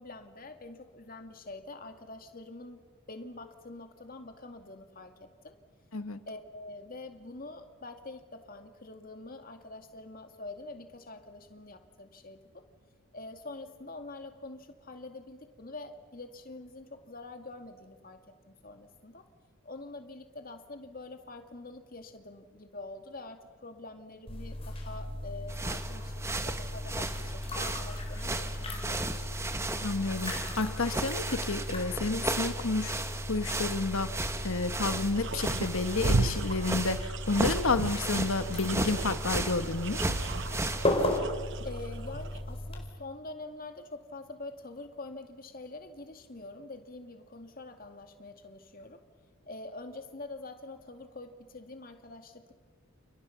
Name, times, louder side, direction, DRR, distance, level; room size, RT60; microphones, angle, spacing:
voice 1, 0.0-2.8 3.1-5.6 6.3-12.6 13.1-18.2 18.5-19.3 19.6-29.3 41.6-49.0 49.4-52.5, left 2 dB, 40° left, 6 dB, 2.3 m, -45 dB
sound 1, 24.3-42.8, left 1 dB, 25° left, 4.6 m, -36 dB
sound 2, 25.5-41.2, right 2 dB, 15° right, 1.3 m, -35 dB
voice 2, 29.8-33.0 33.3-34.1 34.4-40.0, left 3 dB, 75° left, 11 dB, 1.4 m, -30 dB
sound 3, 35.1-42.4, right 3 dB, 55° right, 0.9 m, -35 dB
30.0 x 30.0 x 5.9 m, 1.4 s
head